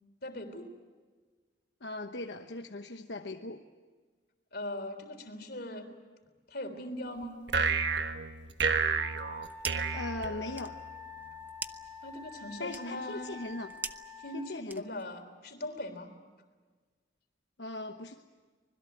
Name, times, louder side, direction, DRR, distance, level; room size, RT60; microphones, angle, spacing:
voice 1, 0.2-0.7 4.5-5.9 6.5-7.4 12.0-13.4 14.2-16.1, left 1 dB, 60° left, 7 dB, 3.6 m, -40 dB
voice 2, 1.8-3.6 9.9-10.8 12.6-13.7 14.3-14.9 17.6-18.2, left 2 dB, 80° left, 4 dB, 1.1 m, -39 dB
sound 1, 7.5-10.9, right 5 dB, 75° right, 1.3 m, -31 dB
Wind instrument woodwind instrument, 9.0-14.5, left 4 dB, 10° left, 4.0 m, -47 dB
sound 2, 9.1-10.0 10.3-15.2, right 3 dB, 10° right, 0.8 m, -44 dB
25.5 x 21.0 x 8.0 m, 1.4 s
head